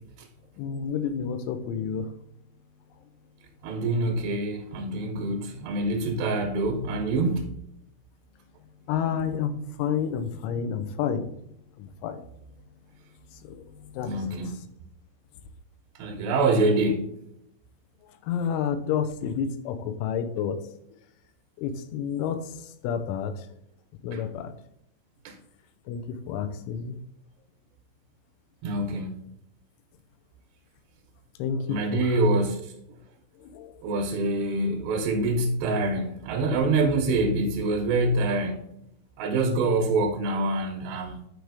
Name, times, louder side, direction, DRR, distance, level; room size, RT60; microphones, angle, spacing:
voice 1, 0.6-2.1 8.9-11.3 11.8-12.2 13.4-13.6 13.9-14.2 18.3-20.7 21.6-22.5 22.8-23.4 24.0-24.5 25.9-27.0 31.4-32.1 33.5-33.7, left 7 dB, 90° left, 10 dB, 3.2 m, -29 dB
voice 2, 3.6-7.4 14.0-14.6 16.0-17.1 24.1-24.2 25.2-25.3 28.6-29.1 31.7-32.7 33.8-38.6 39.2-41.2, right 2 dB, 75° right, 2 dB, 2.7 m, -25 dB
10.5 x 4.7 x 3.5 m, 0.77 s
omnidirectional pair, 5.4 m